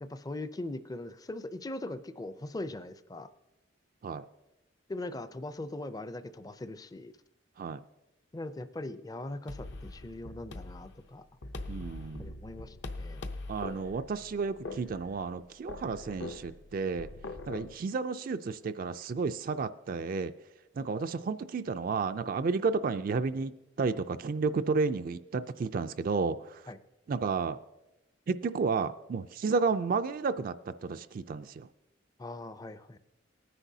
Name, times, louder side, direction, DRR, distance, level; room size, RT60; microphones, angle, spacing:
voice 1, 0.0-3.3 4.9-7.1 8.3-11.2 12.2-13.3 26.7-26.8 32.2-33.0, left 2 dB, 20° left, 12 dB, 0.4 m, -40 dB
sound 1, 9.5-17.7, left 2 dB, 65° left, 0.7 m, -43 dB
voice 2, 11.7-12.3 13.5-17.1 17.5-20.3 20.8-23.5 23.8-26.6 27.1-27.6 28.3-31.7, right 4 dB, 45° right, 10 dB, 0.3 m, -32 dB
19.0 x 9.9 x 2.7 m, 0.96 s
head